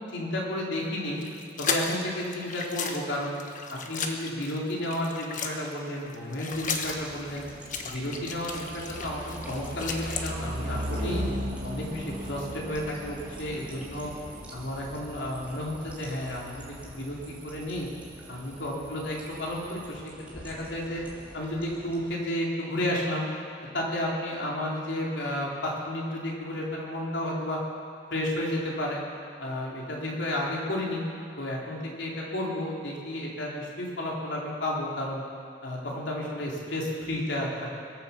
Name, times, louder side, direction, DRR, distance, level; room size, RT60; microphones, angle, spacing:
voice 1, 0.1-1.2 1.6-3.3 3.7-7.4 7.8-11.2 11.6-14.1 14.5-17.9 18.3-21.0 21.3-23.2 23.7-27.6 28.1-29.0 29.4-31.0 31.4-35.2 35.6-37.7, left 1 dB, 80° left, -3 dB, 3.9 m, -32 dB
sound 1, 1.2-5.7 6.0-10.3, left 5 dB, 45° left, 1.2 m, -35 dB
sound 2, 6.5-22.2, right 1 dB, 5° right, 3.0 m, -46 dB
sound 3, 8.5-19.9, equal, 45° right, 2.4 m, -38 dB
23.5 x 8.4 x 7.3 m, 2.5 s
head